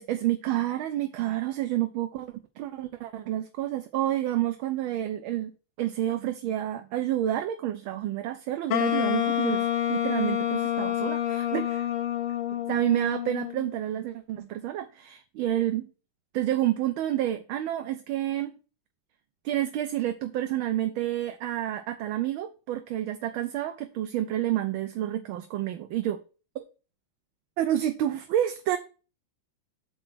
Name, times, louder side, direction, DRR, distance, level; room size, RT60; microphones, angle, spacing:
voice 1, 0.0-5.5 5.8-11.9 12.7-15.9 16.3-18.5 19.4-26.2 26.5-26.6 27.6-28.8, right 13 dB, 80° right, 1.4 m, -29 dB
Wind instrument woodwind instrument, 8.7-13.7, left 11 dB, 75° left, 0.7 m, -28 dB
6.4 x 4.4 x 6.1 m
omnidirectional pair, 2.3 m